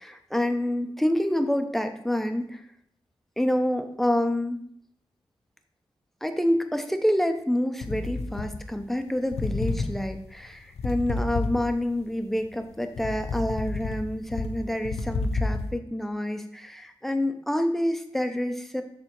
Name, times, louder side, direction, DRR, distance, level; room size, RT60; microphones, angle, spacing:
voice 1, 0.0-2.6 3.4-4.6 6.2-18.8, left 1 dB, ahead, 6 dB, 0.8 m, -27 dB
sound 1, 7.8-9.0 9.3-12.0 12.4-15.7, left 3 dB, 80° left, 0.7 m, -30 dB
6.8 x 3.4 x 4.5 m, 0.67 s
cardioid pair, 45°, 11 cm